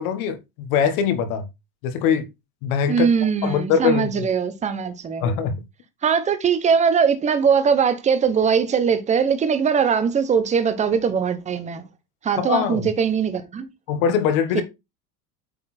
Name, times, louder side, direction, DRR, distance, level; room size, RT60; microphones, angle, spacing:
voice 1, 0.0-1.4 1.8-2.3 2.6-3.1 3.4-4.3 5.2-5.6 12.4-12.8 13.9-14.6, left 7 dB, 60° left, 1.5 m, -22 dB
voice 2, 2.9-5.4 6.0-11.8 12.2-13.7 14.5-14.6, right 6 dB, 15° right, 0.8 m, -21 dB
8.9 x 4.2 x 4.3 m
supercardioid pair, 160°, 48 cm